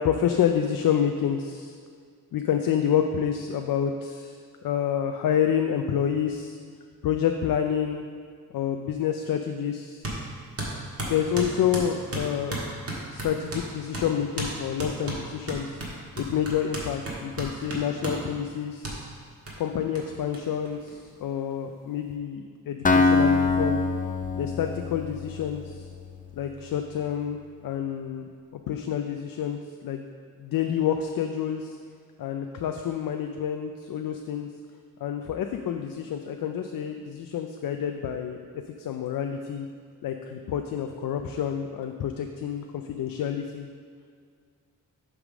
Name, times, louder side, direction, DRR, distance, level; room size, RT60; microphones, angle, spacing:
voice 1, 0.0-1.8 2.3-4.4 4.6-6.6 7.0-8.0 8.5-10.1 11.0-12.6 13.1-15.8 16.2-18.9 19.6-23.8 24.4-25.8 26.4-28.2 28.7-30.0 30.4-31.8 32.2-34.5 35.0-38.4 38.8-39.7 40.0-43.7, left 8 dB, 80° left, 5 dB, 0.5 m, -28 dB
sound 1, 10.0-10.2 10.6-13.7 13.9-14.1 14.4-14.5 14.8-18.2 18.8-19.0 19.5-19.6 20.0-20.1 20.3-20.4 20.7-21.4, right 1 dB, 45° right, 1.6 m, -33 dB
Acoustic guitar, 22.8-26.7, left 3 dB, 25° left, 0.4 m, -24 dB
8.1 x 3.7 x 6.0 m, 2.1 s
wide cardioid pair, 110°, 33 cm